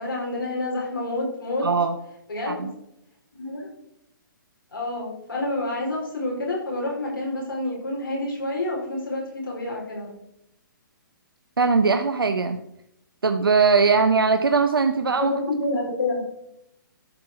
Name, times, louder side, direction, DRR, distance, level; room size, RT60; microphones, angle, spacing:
voice 1, 0.0-1.7 2.3-2.7 3.3-3.7 4.7-10.1 15.0-16.2, left 2 dB, 85° left, -3 dB, 4.6 m, -28 dB
voice 2, 1.6-2.0 2.5-2.7 11.6-12.6 13.2-15.3, right 4 dB, 90° right, 7 dB, 0.7 m, -20 dB
12.5 x 4.8 x 6.1 m, 0.83 s
hypercardioid pair, 135°, 12 cm